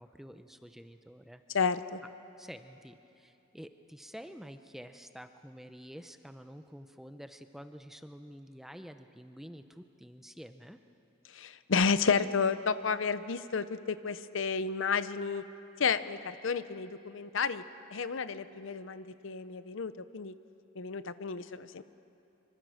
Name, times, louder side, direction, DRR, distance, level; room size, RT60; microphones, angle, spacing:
voice 1, 0.0-1.4 2.4-10.8, equal, ahead, 8 dB, 0.6 m, -49 dB
voice 2, 1.5-2.0 11.3-15.4 15.8-17.6 17.9-20.3 20.8-21.8, left 5 dB, 75° left, 14 dB, 0.7 m, -31 dB
25.5 x 24.5 x 6.4 m, 2.9 s
head